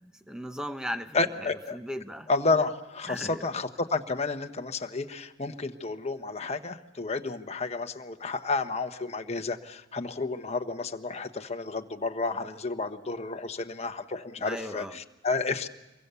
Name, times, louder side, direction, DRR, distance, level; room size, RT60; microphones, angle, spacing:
voice 1, 0.0-2.3 3.1-3.5 14.4-15.0, equal, 5° right, 9 dB, 0.9 m, -37 dB
voice 2, 1.1-1.8 2.3-15.7, left 3 dB, 35° left, 6 dB, 1.1 m, -31 dB
26.5 x 23.5 x 6.9 m, 1.1 s
head